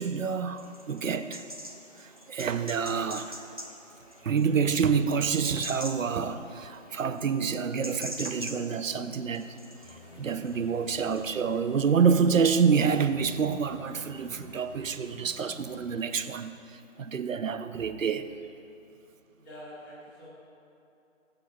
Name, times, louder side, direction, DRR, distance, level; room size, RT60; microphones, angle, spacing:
voice 1, 0.0-1.4 2.0-3.4 4.2-9.6 9.9-18.3, right 6 dB, 75° right, 10 dB, 0.7 m, -27 dB
sound 1, 0.6-11.3, equal, 30° right, 0.4 m, -45 dB
sound 2, 9.8-16.3, left 2 dB, 60° left, 2.1 m, -50 dB
voice 2, 19.4-20.3, equal, 15° left, -9 dB, 1.9 m, -46 dB
17.5 x 8.0 x 2.2 m, 2.8 s
figure-of-eight pair, 165°, 39 cm